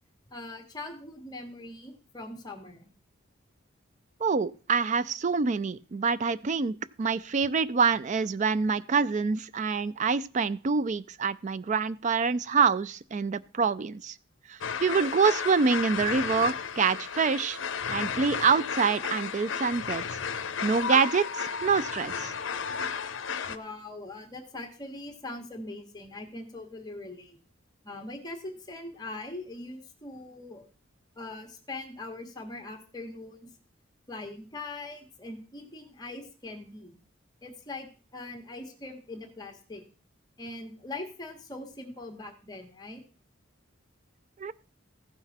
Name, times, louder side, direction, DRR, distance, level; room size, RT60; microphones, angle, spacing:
voice 1, 0.3-2.9 23.5-27.4 27.8-30.6 31.2-33.4 34.1-37.0 37.4-39.8 40.4-43.0, left 2 dB, 20° left, 4 dB, 1.5 m, -41 dB
voice 2, 4.2-14.2 14.5-17.6 17.9-20.0 20.6-22.3 44.4-44.5, right 5 dB, 35° right, 17 dB, 0.4 m, -26 dB
sound 1, 14.6-23.6, left 6 dB, 65° left, 0.7 m, -33 dB
15.0 x 5.9 x 4.2 m, 0.37 s
head